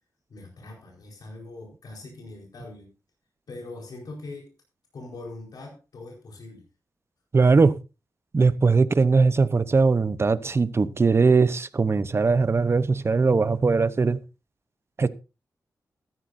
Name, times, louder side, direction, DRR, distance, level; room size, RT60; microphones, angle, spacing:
voice 1, 0.3-2.9 3.5-4.5 4.9-6.6, left 2 dB, 80° left, 4.5 m, -42 dB
voice 2, 7.3-7.8 8.3-14.2 15.0-15.1, right 4 dB, 40° right, 0.8 m, -20 dB
14.5 x 13.5 x 2.7 m
wide cardioid pair, 80°, 7 cm